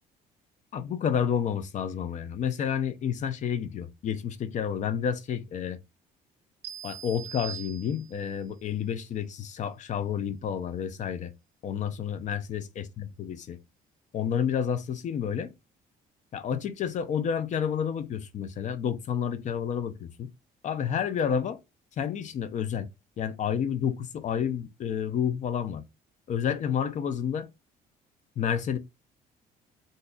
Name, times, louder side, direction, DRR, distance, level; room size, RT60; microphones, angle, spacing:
voice 1, 0.7-5.8 6.8-11.3 11.6-13.6 14.1-15.5 16.3-20.3 20.6-21.6 22.0-22.9 23.2-25.8 26.3-27.5 28.4-28.8, left 8 dB, 45° left, 0.5 m, -30 dB
sound 1, 6.6-8.4, right 10 dB, 85° right, 0.4 m, -42 dB
2.6 x 2.3 x 3.9 m
cardioid pair, 110°, 17 cm